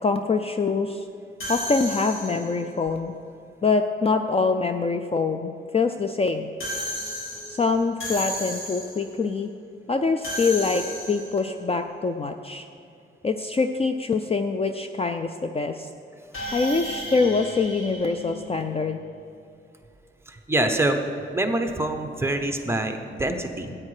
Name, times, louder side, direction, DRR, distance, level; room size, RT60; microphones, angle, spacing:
voice 1, 0.0-1.0 1.5-3.1 3.6-6.5 7.5-9.5 9.9-12.7 13.2-15.9 16.5-19.0, left 4 dB, 30° left, 7 dB, 0.4 m, -24 dB
sound 1, 1.4-2.7 6.6-9.1 10.2-11.5 16.3-18.9, equal, 75° left, 2.3 m, -34 dB
voice 2, 20.3-21.0 21.3-23.7, right 1 dB, 10° right, 4 dB, 0.8 m, -25 dB
14.0 x 8.7 x 4.9 m, 2.4 s
wide cardioid pair, 160°, 21 cm